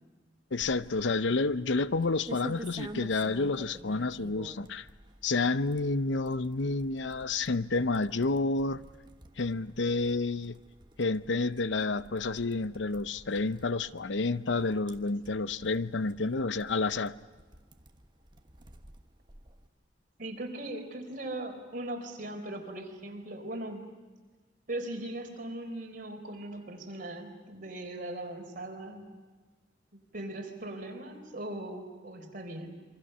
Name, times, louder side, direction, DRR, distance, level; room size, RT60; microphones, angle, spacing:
voice 1, 0.5-4.9 5.2-8.8 9.4-10.6 11.0-17.1, left 3 dB, 85° left, 0.7 m, -29 dB
sound 1, 0.5-19.7, right 1 dB, 25° right, 1.4 m, -50 dB
voice 2, 20.2-23.9 24.7-29.1 29.9-32.8, right 1 dB, 50° right, 4.3 m, -39 dB
27.5 x 24.0 x 6.8 m
head